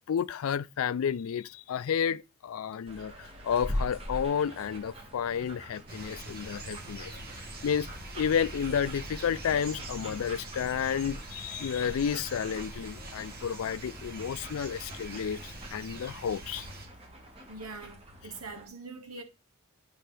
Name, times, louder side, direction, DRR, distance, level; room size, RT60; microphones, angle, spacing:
voice 1, 0.1-7.1 7.6-16.7, left 7 dB, 65° left, 0.4 m, -31 dB
sound 1, 2.9-18.7, equal, 25° right, 1.8 m, -43 dB
sound 2, 5.9-16.9, right 2 dB, 45° right, 2.1 m, -43 dB
voice 2, 17.5-19.2, right 3 dB, 80° right, 1.9 m, -43 dB
9.1 x 5.4 x 3.4 m
head